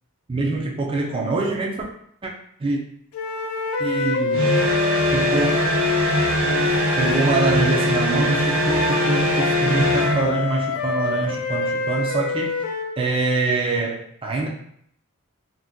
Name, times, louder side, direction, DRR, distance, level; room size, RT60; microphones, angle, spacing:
voice 1, 0.3-1.9 2.2-2.3 2.6-2.8 3.8-4.5 5.1-5.6 6.4-6.7 7.0-12.6 13.0-14.5, right 3 dB, 25° right, -1 dB, 0.3 m, -24 dB
sound 1, 3.1-7.4 8.3-13.0, left 4 dB, 75° left, 0.4 m, -27 dB
sound 2, 4.3-10.3, equal, 65° right, 0.6 m, -21 dB
2.5 x 2.2 x 3.5 m, 0.69 s
head